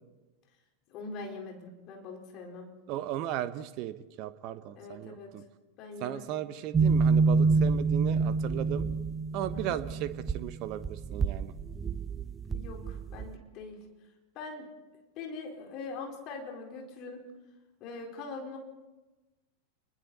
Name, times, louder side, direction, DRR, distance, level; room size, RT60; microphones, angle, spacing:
voice 1, 0.9-2.7 4.8-5.3 5.8-6.4 9.5-9.8 12.5-13.8 14.3-14.7 15.2-17.2 17.8-18.6, left 4 dB, 40° left, 1 dB, 4.4 m, -42 dB
voice 2, 2.9-5.4 6.0-8.9 9.3-11.5, right 12 dB, 40° right, 13 dB, 1.2 m, -36 dB
sound 1, 6.7-13.3, right 4 dB, 15° right, 1.0 m, -27 dB
29.5 x 21.0 x 4.2 m, 1.1 s
figure-of-eight pair, 90°, 0 cm